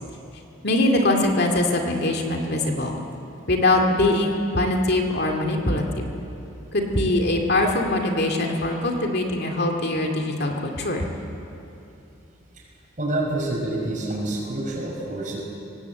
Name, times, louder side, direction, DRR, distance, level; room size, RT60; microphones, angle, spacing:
voice 1, 0.6-3.0 3.5-6.1 6.7-11.1, left 1 dB, 55° left, 2 dB, 2.4 m, -22 dB
voice 2, 13.0-15.4, right 1 dB, 40° right, -1 dB, 5.6 m, -27 dB
24.0 x 19.0 x 8.3 m, 2.8 s
head